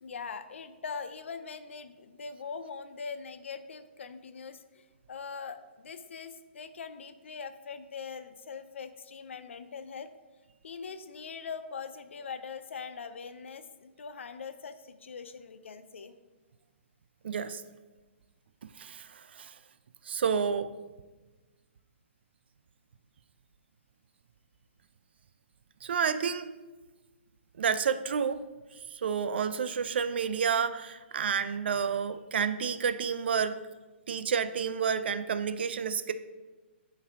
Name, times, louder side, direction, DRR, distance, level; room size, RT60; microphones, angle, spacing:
voice 1, 0.0-10.1 10.6-16.2, left 5 dB, 85° left, 11 dB, 0.5 m, -42 dB
voice 2, 17.2-17.6 18.8-19.6 20.0-20.7 25.8-26.5 27.6-28.5 28.7-33.7 34.1-36.1, right 6 dB, 60° right, 13 dB, 0.3 m, -30 dB
8.6 x 3.3 x 3.6 m, 1.2 s
hypercardioid pair, 175°, 6 cm